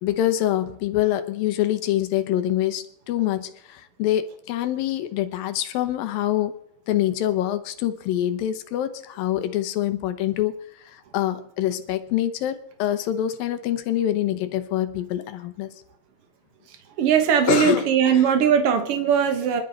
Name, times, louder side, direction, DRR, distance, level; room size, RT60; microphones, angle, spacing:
voice 1, 0.0-6.5 6.9-15.7 17.5-18.3, left 12 dB, 75° left, 11 dB, 2.5 m, -25 dB
voice 2, 17.0-19.6, right 8 dB, 80° right, 7 dB, 1.2 m, -20 dB
24.5 x 11.5 x 4.0 m, 0.75 s
omnidirectional pair, 4.4 m